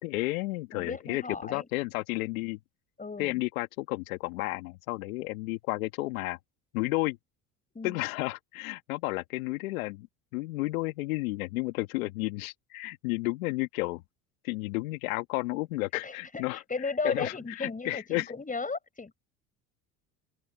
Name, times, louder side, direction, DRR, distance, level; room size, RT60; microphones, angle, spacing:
voice 1, 0.0-2.6 3.2-6.4 6.7-7.2 7.8-10.1 10.3-14.0 14.4-16.6 17.0-18.3, left 21 dB, 80° left, 1.7 m, -32 dB
voice 2, 0.7-1.7 3.0-3.4 7.7-8.0 16.0-19.1, left 4 dB, 20° left, 6.8 m, -35 dB
open air
hypercardioid pair, 80°, 42 cm